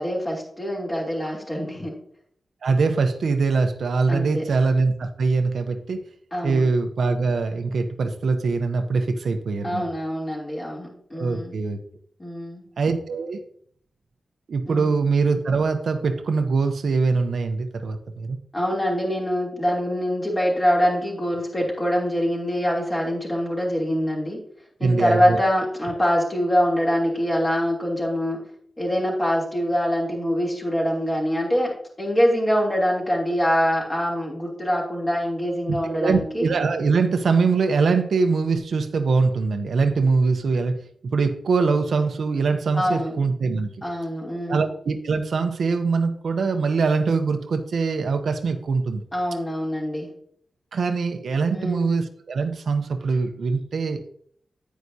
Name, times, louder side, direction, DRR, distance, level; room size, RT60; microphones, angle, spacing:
voice 1, 0.0-1.9 4.1-4.4 6.3-6.6 9.6-11.6 12.2-12.6 14.7-14.9 18.5-24.4 24.8-28.4 28.8-31.7 32.0-36.5 42.7-43.1 43.8-44.7 49.1-50.1 51.5-51.9, equal, 20° left, -3 dB, 3.0 m, -24 dB
voice 2, 2.6-6.0 6.4-9.8 11.1-11.8 12.8-13.4 14.5-18.4 24.8-25.4 35.8-40.8 41.0-43.7 44.5-49.0 50.7-54.0, right 4 dB, 80° right, 7 dB, 0.8 m, -23 dB
9.4 x 9.3 x 2.8 m, 0.63 s
wide cardioid pair, 110°, 0 cm